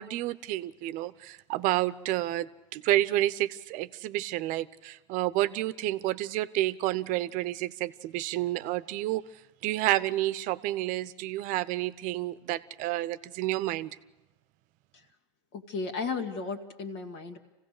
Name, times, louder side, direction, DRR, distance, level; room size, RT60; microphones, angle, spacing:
voice 1, 0.0-9.2 9.6-13.9, right 15 dB, 50° right, 15 dB, 0.8 m, -30 dB
voice 2, 15.5-17.4, left 4 dB, 65° left, 4 dB, 2.2 m, -34 dB
26.0 x 16.5 x 6.6 m, 1.0 s
supercardioid pair, 115°, 17 cm